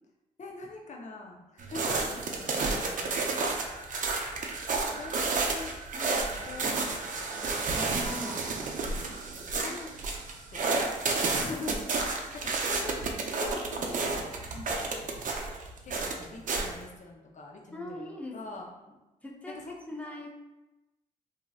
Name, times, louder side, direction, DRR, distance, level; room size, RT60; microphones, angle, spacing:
voice 1, 0.4-3.3 4.9-7.8 9.6-9.9 10.2-10.3 10.5-11.0 11.2-11.8 12.1-15.1 15.8-18.0 18.3-18.7 19.5-19.8, left 3 dB, 45° left, 0 dB, 0.7 m, -43 dB
sound 1, 1.6-16.8, right 3 dB, 50° right, 0.5 m, -31 dB
voice 2, 7.7-8.4 13.8-13.9 17.7-18.9 19.2-20.3, left 1 dB, 10° left, -1 dB, 0.7 m, -41 dB
2.9 x 2.7 x 2.4 m, 1.0 s
supercardioid pair, 60°, 17 cm